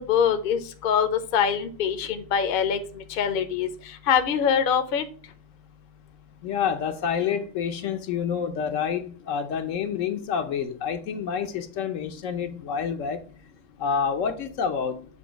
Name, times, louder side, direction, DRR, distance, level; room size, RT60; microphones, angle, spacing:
voice 1, 0.0-3.7 4.1-5.0, left 7 dB, 50° left, 0.7 m, -24 dB
voice 2, 6.4-13.2 13.8-15.1, left 7 dB, 75° left, 1.1 m, -28 dB
7.0 x 2.7 x 5.0 m
omnidirectional pair, 1.3 m